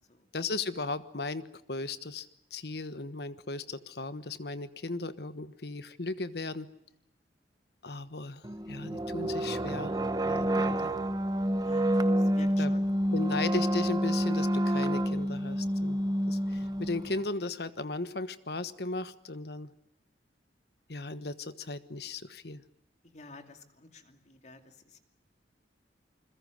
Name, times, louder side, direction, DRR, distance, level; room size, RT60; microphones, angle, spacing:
voice 1, 0.3-6.7 7.8-10.9 12.6-12.7 13.1-16.0 16.3-19.7 20.9-22.6, left 3 dB, 65° left, 13 dB, 1.3 m, -36 dB
sound 1, 8.4-17.2, equal, 20° right, 0.9 m, -28 dB
voice 2, 11.5-12.9 23.1-25.0, left 2 dB, 40° left, 6 dB, 2.6 m, -51 dB
28.5 x 22.0 x 6.6 m, 0.78 s
head